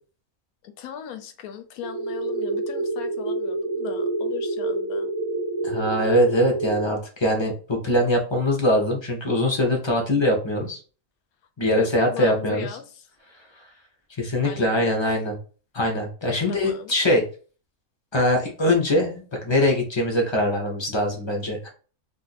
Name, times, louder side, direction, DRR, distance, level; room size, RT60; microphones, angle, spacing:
voice 1, 0.6-5.1 11.6-13.1 14.4-14.9 16.5-16.9, left 8 dB, 85° left, 1.1 m, -37 dB
sound 1, 1.8-6.8, right 2 dB, 30° right, 0.4 m, -27 dB
voice 2, 5.6-10.8 11.6-12.7 13.6-13.7 14.1-15.3 15.7-17.2 18.1-21.7, left 1 dB, 30° left, 0.5 m, -22 dB
2.5 x 2.5 x 3.9 m
omnidirectional pair, 1.5 m